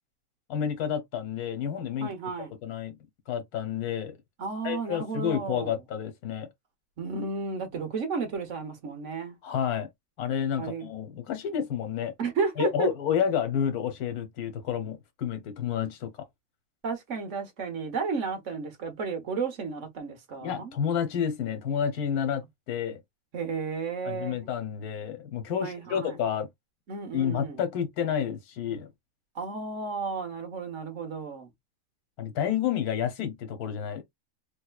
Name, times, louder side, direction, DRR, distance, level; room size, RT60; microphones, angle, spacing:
voice 1, 0.5-2.1 2.6-2.9 3.3-4.2 4.6-6.5 9.4-9.9 10.2-12.1 12.6-16.1 20.4-23.0 24.0-26.5 27.1-28.9 32.2-34.0, left 8 dB, 85° left, 1.4 m, -30 dB
voice 2, 2.0-2.5 4.4-5.8 7.0-9.4 10.6-10.9 12.2-12.9 16.8-20.8 23.3-24.5 25.6-26.2 26.9-27.6 29.3-31.5, right 5 dB, 60° right, 1.4 m, -33 dB
3.4 x 3.2 x 2.3 m
omnidirectional pair, 1.5 m